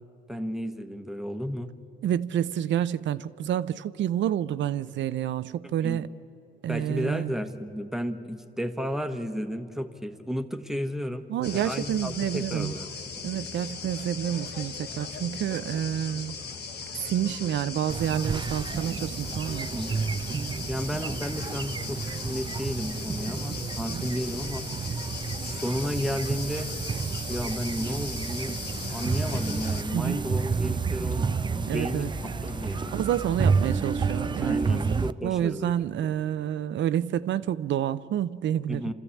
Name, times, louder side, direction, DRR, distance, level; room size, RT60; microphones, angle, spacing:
voice 1, 0.3-1.7 5.8-6.0 6.7-11.3 11.5-12.9 19.7-19.9 20.7-24.6 25.4-26.7 27.3-28.6 28.9-32.9 34.4-35.7 38.7-38.9, equal, ahead, 1.3 m, -33 dB
voice 2, 2.0-6.1 6.6-7.3 11.3-12.7 13.2-16.4 17.0-19.7 23.9-24.1 29.9-30.2 31.7-32.1 32.9-34.8 35.2-38.9, right 10 dB, 70° right, 0.7 m, -29 dB
sound 1, 11.4-29.8, left 5 dB, 55° left, 1.6 m, -38 dB
sound 2, 17.9-35.1, right 5 dB, 25° right, 0.4 m, -30 dB
sound 3, 28.7-35.1, left 5 dB, 40° left, 0.8 m, -44 dB
29.0 x 13.5 x 8.5 m
cardioid pair, 90°, 20 cm